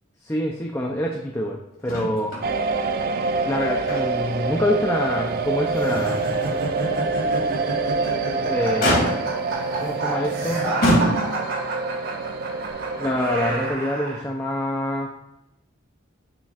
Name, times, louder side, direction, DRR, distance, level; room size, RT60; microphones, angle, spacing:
voice 1, 0.2-2.4 3.4-6.2 8.4-9.2 9.8-10.6 13.0-15.1, left 1 dB, 15° left, 1 dB, 0.6 m, -26 dB
Motor vehicle (road), 1.9-2.5 2.8-2.9 3.4-4.4 4.8-4.9 5.5-5.6 7.8-8.2 8.8-9.5 10.2-10.4 10.8-11.6 12.7-12.8, equal, 50° left, 2.6 m, -24 dB
sound 1, 2.4-13.7, right 3 dB, 50° right, 0.4 m, -26 dB
sound 2, 5.7-14.2, right 2 dB, 90° right, 3.0 m, -30 dB
9.5 x 6.8 x 2.5 m, 0.87 s
head